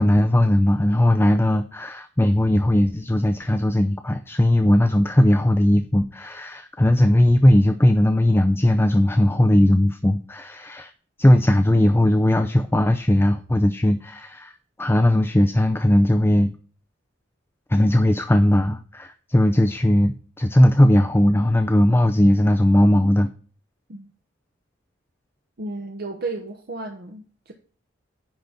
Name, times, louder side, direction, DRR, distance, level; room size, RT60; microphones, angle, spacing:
voice 1, 0.0-10.9 11.2-14.5 14.8-16.5 17.7-23.3, left 1 dB, 10° left, 7 dB, 0.5 m, -18 dB
voice 2, 25.6-27.5, right 3 dB, 55° right, 3 dB, 1.0 m, -33 dB
10.5 x 4.1 x 5.9 m, 0.41 s
head